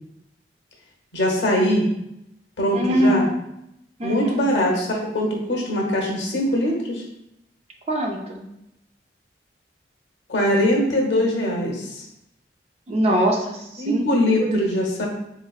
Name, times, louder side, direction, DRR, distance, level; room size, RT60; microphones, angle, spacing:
voice 1, 1.1-1.9 2.6-3.2 4.0-7.0 10.3-12.1 13.8-15.1, equal, 85° left, 0 dB, 1.0 m, -22 dB
voice 2, 2.7-3.3 4.0-4.4 7.9-8.4 12.9-14.0 14.4-14.6, equal, 35° right, 1 dB, 0.5 m, -22 dB
3.9 x 3.1 x 2.4 m, 0.83 s
head